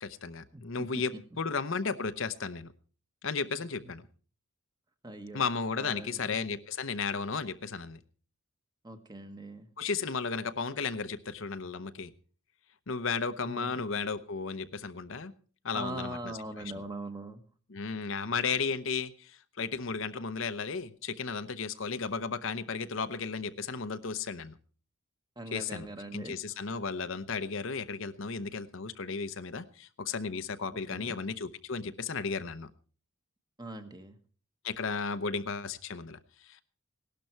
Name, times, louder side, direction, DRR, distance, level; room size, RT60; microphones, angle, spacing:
voice 1, 0.0-2.7 3.2-4.0 5.3-8.0 9.8-12.1 12.9-15.3 15.6-16.3 17.7-24.5 25.5-25.9 26.1-32.7 34.6-36.6, left 5 dB, 65° left, 11 dB, 0.8 m, -34 dB
voice 2, 0.5-1.0 3.8-3.9 5.0-5.4 5.8-6.4 8.8-9.7 13.4-13.8 15.7-17.4 25.4-26.7 30.9-31.2 33.6-34.2, right 1 dB, 20° right, 8 dB, 1.3 m, -42 dB
17.5 x 12.0 x 4.5 m, 0.41 s
head